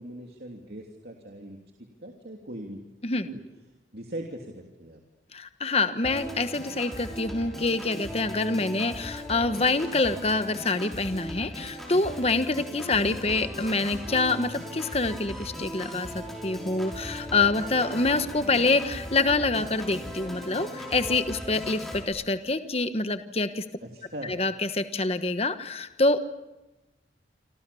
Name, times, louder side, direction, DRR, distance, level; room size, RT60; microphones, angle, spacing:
voice 1, 0.0-1.6 2.0-2.8 3.2-3.4 3.9-5.0 13.0-13.1 23.8-24.4, right 1 dB, 60° right, 1 dB, 3.0 m, -40 dB
voice 2, 5.3-23.6 24.3-26.2, left 3 dB, 35° left, 10 dB, 1.2 m, -26 dB
Organ, 6.0-22.0, equal, ahead, 5.9 m, -38 dB
28.0 x 26.5 x 7.0 m, 1.0 s
head